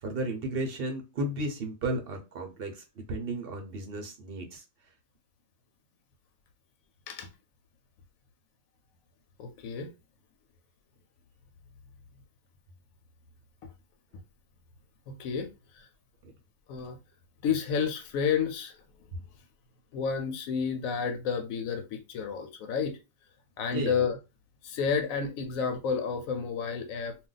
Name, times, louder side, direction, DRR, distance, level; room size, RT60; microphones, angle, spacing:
voice 1, 0.0-4.6 16.2-16.3 23.7-24.0, right 1 dB, 55° right, 0.8 m, -34 dB
voice 2, 9.4-9.9 15.1-15.5 15.7-15.9 16.7-17.0 17.4-18.8 19.9-23.0 23.6-24.2 24.6-27.2, left 6 dB, 90° left, 1.0 m, -30 dB
2.4 x 2.2 x 3.8 m
omnidirectional pair, 1.4 m